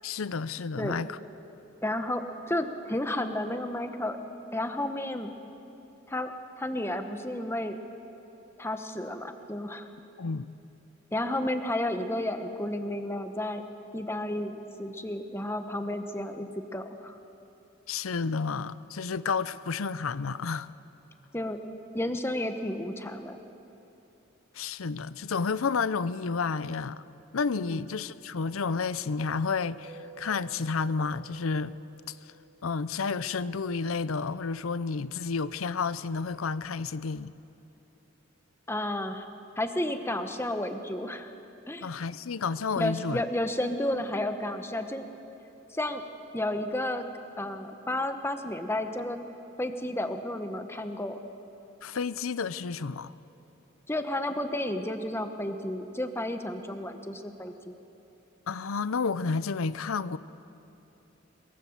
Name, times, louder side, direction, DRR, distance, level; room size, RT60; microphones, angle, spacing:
voice 1, 0.0-1.2 10.2-10.5 17.9-20.7 24.5-27.0 27.3-31.8 32.1-32.2 32.6-37.3 41.8-43.2 51.8-53.1 58.5-60.2, left 5 dB, 90° left, 0.6 m, -31 dB
voice 2, 1.8-4.2 4.5-5.3 6.1-7.8 8.6-9.9 11.1-13.6 13.9-17.1 21.3-21.6 21.9-23.4 27.7-27.9 38.7-39.3 39.6-41.3 41.7-41.9 42.8-45.1 45.7-46.0 46.3-47.1 47.4-49.2 49.6-51.2 53.9-57.8, left 1 dB, 10° left, 1.1 m, -32 dB
Mallet percussion, 29.8-33.3, right 6 dB, 70° right, 2.1 m, -52 dB
23.0 x 22.0 x 7.3 m
head